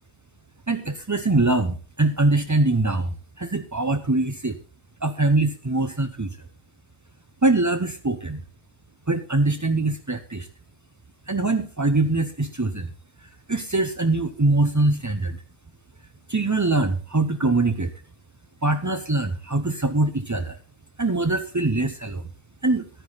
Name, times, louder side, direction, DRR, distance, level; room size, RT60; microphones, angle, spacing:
voice 1, 0.7-4.6 5.0-6.4 7.4-8.4 9.1-10.5 11.3-12.9 13.5-15.4 16.3-17.9 18.6-20.6 21.0-22.2 22.6-22.9, right 2 dB, 25° right, 8 dB, 0.4 m, -23 dB
14.5 x 10.5 x 4.0 m, 0.36 s
omnidirectional pair, 1.5 m